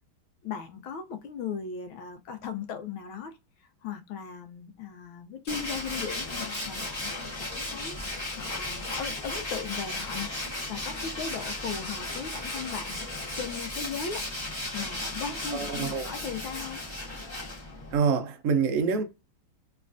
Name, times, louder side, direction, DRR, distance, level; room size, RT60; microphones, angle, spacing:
voice 1, 0.4-3.4 3.8-7.1 7.4-10.3 10.7-14.2 14.7-16.8, left 6 dB, 90° left, 1.5 m, -37 dB
Tools, 5.5-18.0, left 2 dB, 15° left, 1.0 m, -35 dB
voice 2, 15.5-16.1 17.9-19.0, right 5 dB, 70° right, 0.7 m, -26 dB
3.4 x 3.1 x 2.5 m
omnidirectional pair, 2.2 m